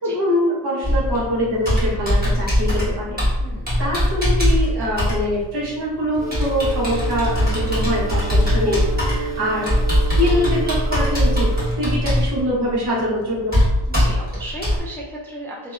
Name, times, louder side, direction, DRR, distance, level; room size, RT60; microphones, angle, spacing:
voice 1, 0.0-3.2 3.8-9.7 10.1-11.5 11.8-13.6, left 1 dB, 65° right, -5 dB, 1.0 m, -23 dB
Computer keyboard, 0.8-14.8, equal, 20° right, 1.2 m, -21 dB
voice 2, 3.4-3.7 8.9-9.4 10.1-10.2 13.9-15.7, equal, 5° left, -4 dB, 0.3 m, -35 dB
sound 1, 6.2-11.7, right 6 dB, 40° right, 0.9 m, -31 dB
2.6 x 2.2 x 2.3 m, 1.1 s
wide cardioid pair, 100°, 42 cm